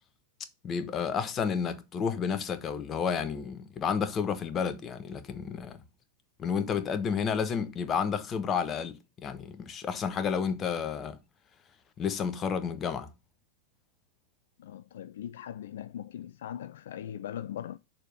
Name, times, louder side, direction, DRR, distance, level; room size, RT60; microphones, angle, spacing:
voice 1, 0.6-5.8 6.4-11.2 12.0-13.1, left 6 dB, 25° left, 1.2 m, -31 dB
voice 2, 14.6-17.8, left 10 dB, 60° left, 0.3 m, -40 dB
6.6 x 4.7 x 6.3 m
figure-of-eight pair, 90°, 0 cm